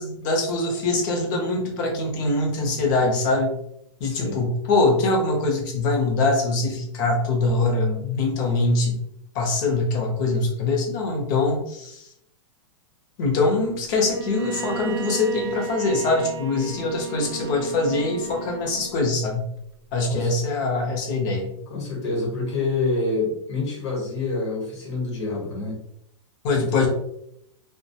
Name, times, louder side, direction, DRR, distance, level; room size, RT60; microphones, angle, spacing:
voice 1, 0.0-3.5 4.0-9.0 9.3-12.1 13.2-19.4 19.9-21.5 26.4-26.9, left 2 dB, 40° left, 1 dB, 0.7 m, -23 dB
voice 2, 4.0-4.4 20.1-20.3 21.7-25.8 26.5-26.9, left 3 dB, 60° left, 0 dB, 1.0 m, -27 dB
Bowed string instrument, 14.1-19.1, right 5 dB, 55° right, 0.4 m, -35 dB
2.3 x 2.2 x 2.7 m, 0.74 s
supercardioid pair, 160°, 16 cm